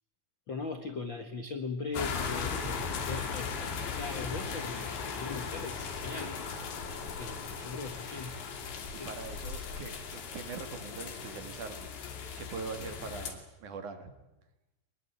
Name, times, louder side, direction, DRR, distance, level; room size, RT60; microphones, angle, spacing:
voice 1, 0.5-6.4 7.2-8.4 8.9-9.1, left 4 dB, 70° left, 7 dB, 1.1 m, -40 dB
sound 1, 1.9-13.3, left 5 dB, 90° left, 5.1 m, -38 dB
voice 2, 9.0-11.9 12.4-14.1, right 5 dB, 50° right, 7 dB, 3.1 m, -42 dB
24.0 x 21.0 x 9.9 m, 0.98 s
omnidirectional pair, 4.9 m